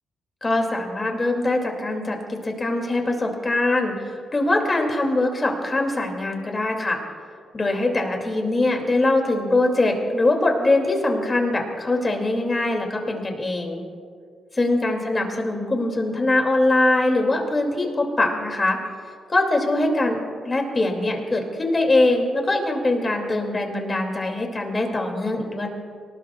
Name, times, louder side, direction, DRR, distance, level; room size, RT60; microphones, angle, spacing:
voice 1, 0.4-7.0 7.5-13.8 14.5-18.8 19.3-20.2 20.4-25.7, left 2 dB, 25° left, 2 dB, 2.4 m, -22 dB
24.5 x 19.0 x 2.3 m, 2.2 s
cardioid pair, 125°, 0 cm